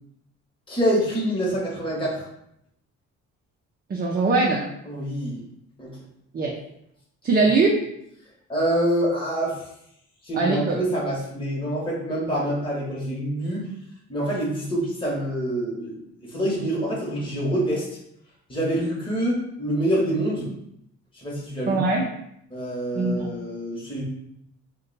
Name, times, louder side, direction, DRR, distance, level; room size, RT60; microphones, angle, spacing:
voice 1, 0.7-2.3 4.8-5.4 5.8-6.0 8.5-9.6 10.2-13.7 14.1-17.8 18.5-20.5 21.1-21.8 22.5-24.0, right 1 dB, 15° left, -5 dB, 1.1 m, -26 dB
voice 2, 3.9-4.6 6.3-6.5 7.2-7.7 10.3-10.8 21.7-22.0 22.9-23.3, right 3 dB, 30° right, -1 dB, 0.5 m, -21 dB
2.6 x 2.2 x 3.9 m, 0.76 s
cardioid pair, 90°, 30 cm